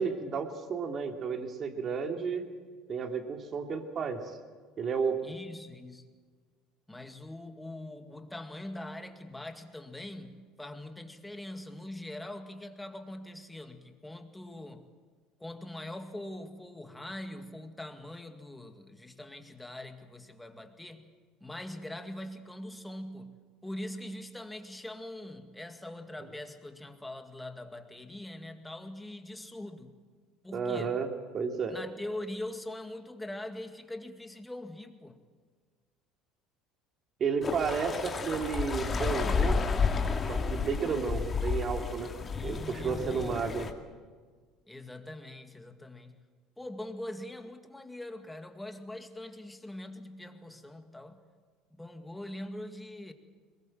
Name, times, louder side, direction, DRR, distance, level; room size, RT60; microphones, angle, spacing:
voice 1, 0.0-2.4 2.9-4.4 4.8-5.2 30.5-31.1 31.3-31.8 37.2-39.6 40.3-42.1 42.4-43.7, right 5 dB, 45° right, 4 dB, 2.8 m, -32 dB
voice 2, 5.2-6.1 6.9-14.9 15.4-21.1 21.4-29.9 30.4-31.0 31.7-35.2 42.3-43.5 44.7-46.3 46.6-51.2 51.7-53.1, left 1 dB, 10° left, 6 dB, 2.2 m, -42 dB
sound 1, 37.4-43.7, left 5 dB, 30° left, 2.2 m, -31 dB
22.0 x 20.5 x 7.7 m, 1.6 s
supercardioid pair, 90°, 0 cm